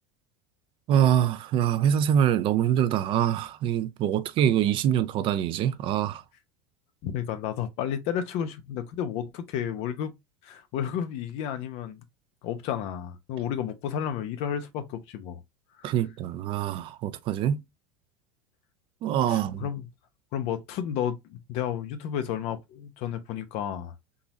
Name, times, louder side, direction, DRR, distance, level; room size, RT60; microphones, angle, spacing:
voice 1, 0.9-6.2 15.8-17.6 19.0-19.7, right 10 dB, 45° right, 0.5 m, -24 dB
voice 2, 7.0-10.1 10.4-12.0 12.4-15.4 15.8-15.9 19.3-19.9 20.3-23.9, left 9 dB, 60° left, 0.8 m, -32 dB
3.8 x 3.0 x 2.6 m
hypercardioid pair, 95°, 12 cm